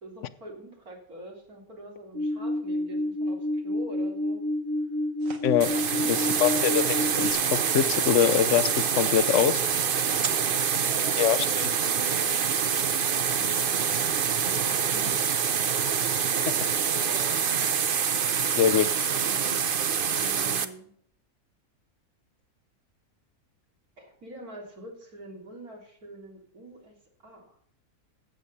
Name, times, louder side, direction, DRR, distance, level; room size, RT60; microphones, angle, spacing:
voice 1, 0.0-4.4 5.7-6.1 10.9-15.2 16.9-17.4 18.8-19.7 20.1-20.9 24.0-27.0 27.2-27.6, right 1 dB, 85° right, -1 dB, 3.9 m, -45 dB
sound 1, 2.1-7.3, left 1 dB, 30° right, 1.4 m, -29 dB
sound 2, 5.2-10.3, right 5 dB, 65° right, 1.7 m, -43 dB
sound 3, 5.6-20.7, right 7 dB, 45° right, 0.8 m, -26 dB
voice 2, 6.1-9.6 11.2-11.7 16.5-16.6 18.6-18.9, left 10 dB, 60° left, 15 dB, 1.0 m, -24 dB
14.5 x 8.4 x 4.2 m, 0.65 s
omnidirectional pair, 1.5 m